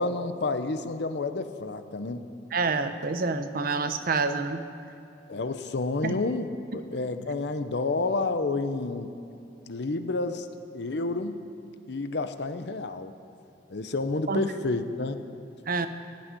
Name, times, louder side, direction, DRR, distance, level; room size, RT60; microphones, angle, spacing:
voice 1, 0.0-2.3 5.3-9.2 9.7-10.5 10.7-11.4 11.9-13.1 13.7-15.2, left 3 dB, 70° left, 9 dB, 0.7 m, -30 dB
voice 2, 2.5-4.6 6.0-6.2 14.3-14.4 15.7-15.9, right 4 dB, 55° right, 9 dB, 0.8 m, -27 dB
16.0 x 6.3 x 9.8 m, 2.8 s
head